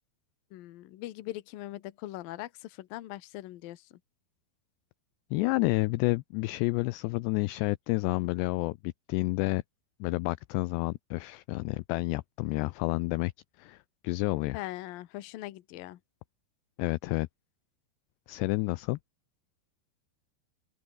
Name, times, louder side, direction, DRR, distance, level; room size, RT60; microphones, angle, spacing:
voice 1, 0.5-4.0 14.5-16.0, left 15 dB, 65° left, 2.5 m, -41 dB
voice 2, 5.3-9.6 10.0-13.3 13.6-13.8 14.0-14.6 16.8-17.3 18.3-19.0, left 22 dB, 80° left, 2.6 m, -29 dB
omnidirectional pair, 5.2 m